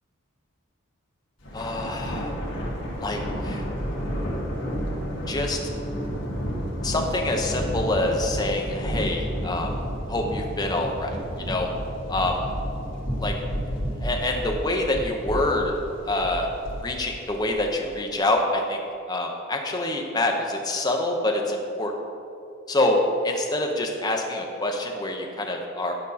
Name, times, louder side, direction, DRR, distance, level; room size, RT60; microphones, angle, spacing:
Thunder, 1.4-18.0, equal, 60° left, 1.8 m, -31 dB
voice 1, 1.5-2.3 3.0-3.6 5.3-5.6 6.8-9.7 10.1-11.7 12.1-12.4 13.2-13.3 14.0-15.7 16.0-16.5 16.8-18.8 19.1-21.9 22.7-25.9, left 1 dB, 20° left, 1 dB, 0.8 m, -26 dB
11.0 x 5.3 x 4.2 m, 2.6 s
head